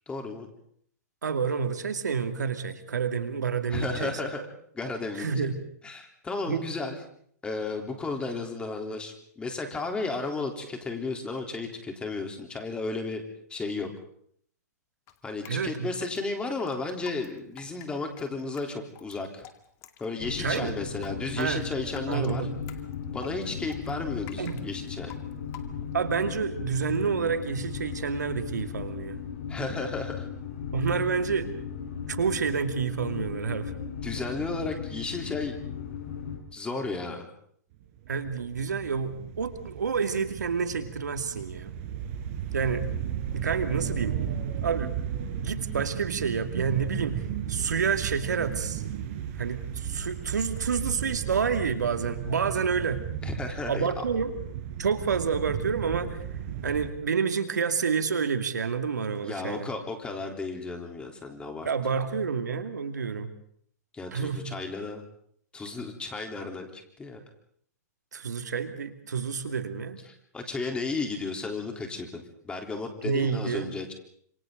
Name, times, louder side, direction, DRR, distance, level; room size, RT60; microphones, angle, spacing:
voice 1, 0.1-0.5 3.7-4.4 4.7-5.5 5.8-7.0 7.4-13.2 13.5-13.9 15.2-19.5 20.0-22.5 23.1-25.1 29.5-30.3 34.0-35.6 36.5-37.3 53.2-54.0 59.2-61.7 63.9-65.0 65.5-67.2 70.3-73.9, left 3 dB, 10° left, 3 dB, 3.6 m, -33 dB
voice 2, 1.2-4.1 5.1-5.6 6.5-6.7 15.5-15.9 20.4-20.8 21.4-21.6 22.1-22.5 24.4-24.6 25.9-29.2 30.7-31.5 32.1-33.7 38.1-41.7 42.5-42.9 43.3-44.2 44.6-44.9 45.4-48.8 49.4-53.0 53.7-54.4 54.8-56.2 56.6-59.7 61.7-63.3 64.1-64.5 68.1-70.0 73.0-73.7, right 6 dB, 85° right, 8 dB, 2.4 m, -29 dB
Drip, 15.1-26.1, left 11 dB, 30° left, 2.3 m, -50 dB
sound 1, 20.2-36.4, left 7 dB, 60° left, 6.1 m, -37 dB
sound 2, 37.8-56.9, right 9 dB, 45° right, 5.0 m, -35 dB
29.5 x 27.0 x 4.0 m, 0.63 s
hypercardioid pair, 135°, 9 cm